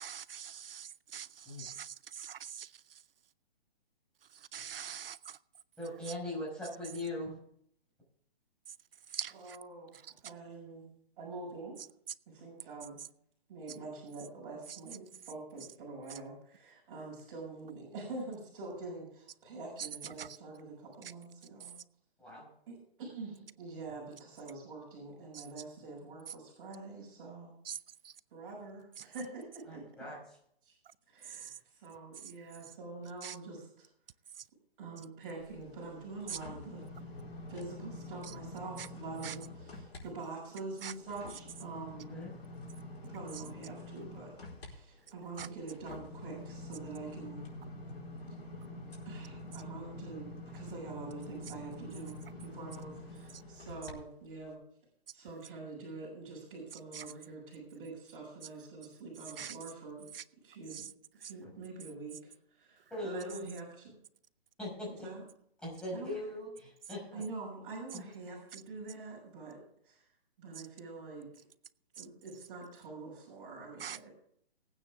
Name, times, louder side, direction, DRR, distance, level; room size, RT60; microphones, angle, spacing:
voice 1, 0.0-3.0 4.3-5.4 8.7-8.8 9.1-9.6 9.9-10.1 13.0-13.1 14.7-14.8 16.1-16.2 19.8-20.4 21.0-21.1 21.6-21.7 25.3-25.5 27.6-27.8 28.0-28.2 29.0-29.1 31.2-31.6 32.2-32.3 33.2-33.4 34.3-34.5 36.3-36.4 38.2-38.3 38.8-38.9 39.2-39.4 40.8-40.9 43.3-43.4 45.4-45.5 53.3-53.4 56.9-57.1 59.4-59.6 60.1-60.2 60.7-60.9 61.2-61.3 68.5-68.6 70.6-70.7 72.0-72.1 73.8-74.1, right 8 dB, 65° right, 0.5 m, -44 dB
voice 2, 5.8-7.4 22.2-22.5 29.7-30.2 42.1-42.3 61.4-61.5 62.9-63.5 64.6-65.1 65.6-67.2 67.9-68.0, left 1 dB, 5° left, 5.6 m, -40 dB
voice 3, 9.3-10.9 11.2-11.8 12.3-13.0 13.5-21.7 22.7-27.5 28.3-29.8 30.6-30.7 31.1-33.9 34.8-36.8 37.5-42.1 43.0-44.3 44.6-47.5 48.3-48.4 49.0-54.6 55.1-60.1 60.4-60.9 61.2-64.0 64.8-65.2 65.9-66.2 66.9-69.6 69.8-70.1 70.4-71.3 72.0-74.1, right 3 dB, 30° right, 6.2 m, -45 dB
sound 1, 35.4-40.0 40.4-53.9 54.4-54.5, left 1 dB, 90° left, 4.4 m, -47 dB
19.5 x 9.2 x 3.6 m
hypercardioid pair, 155°, 31 cm